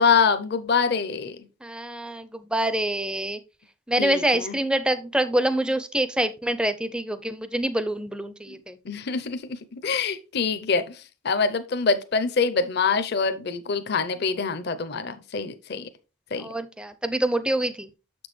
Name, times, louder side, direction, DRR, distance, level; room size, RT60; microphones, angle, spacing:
voice 1, 0.0-1.4 4.0-4.6 8.5-8.6 8.8-15.9 16.3-16.5, left 5 dB, 50° left, 0.6 m, -25 dB
voice 2, 1.6-3.4 3.9-8.8 16.4-17.9, right 1 dB, 5° right, 0.4 m, -26 dB
7.0 x 6.1 x 3.1 m
head